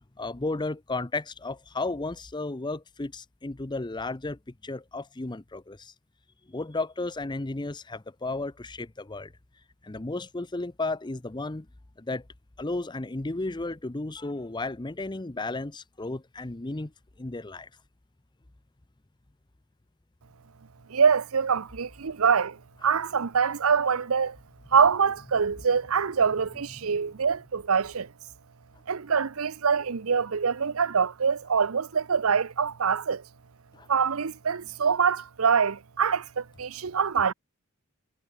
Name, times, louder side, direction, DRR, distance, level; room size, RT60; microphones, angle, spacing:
voice 1, 0.2-5.9 6.5-9.3 9.8-11.7 12.0-12.2 12.6-16.9 17.2-17.7 33.7-33.9, left 2 dB, 20° left, 0.7 m, -33 dB
voice 2, 20.9-24.4 24.7-28.1 28.9-33.2 33.9-37.3, right 6 dB, 90° right, 0.7 m, -24 dB
head